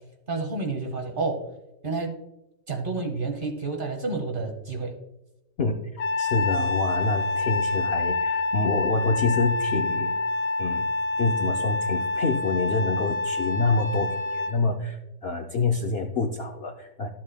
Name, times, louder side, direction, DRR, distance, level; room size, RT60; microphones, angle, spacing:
voice 1, 0.3-1.4 1.8-2.1 2.7-4.9, right 3 dB, 35° right, 3 dB, 1.0 m, -29 dB
Trumpet, 6.0-14.6, left 2 dB, 70° left, 1.5 m, -27 dB
voice 2, 6.2-10.2 10.6-10.9 11.2-17.1, left 3 dB, 85° left, 3 dB, 0.5 m, -27 dB
12.5 x 7.6 x 2.2 m, 0.92 s
omnidirectional pair, 1.9 m